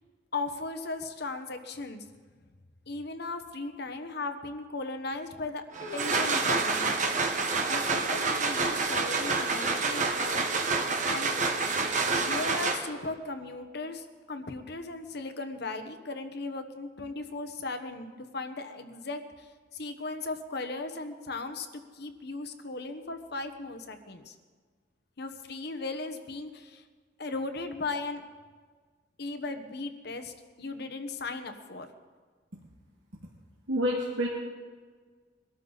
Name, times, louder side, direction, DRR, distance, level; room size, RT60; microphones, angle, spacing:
voice 1, 0.3-2.0 2.9-5.6 5.9-7.0 7.7-10.4 11.0-11.6 12.2-24.3 25.2-26.8 27.2-28.2 29.2-31.9, left 3 dB, 60° left, 8 dB, 1.3 m, -37 dB
sound 1, 5.7-13.1, right 3 dB, 45° right, 1.4 m, -28 dB
voice 2, 33.7-34.3, equal, 90° right, -4 dB, 2.2 m, -27 dB
23.0 x 13.0 x 4.1 m, 1.5 s
head